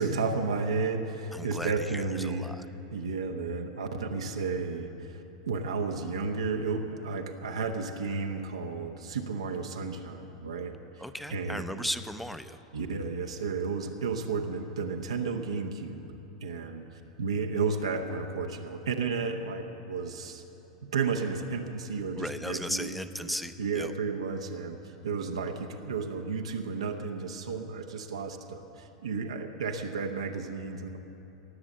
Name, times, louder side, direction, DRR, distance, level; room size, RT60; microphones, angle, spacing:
voice 1, 0.0-2.5 2.9-11.0 11.3-11.9 12.7-16.1 16.4-16.8 17.2-20.4 20.8-22.9 23.2-24.8 25.0-31.0, right 4 dB, 90° right, 3 dB, 0.9 m, -32 dB
voice 2, 1.3-2.7 11.0-12.6 22.2-23.9, equal, ahead, 10 dB, 0.6 m, -36 dB
18.0 x 7.2 x 7.8 m, 3.0 s
hypercardioid pair, 100°, 3 cm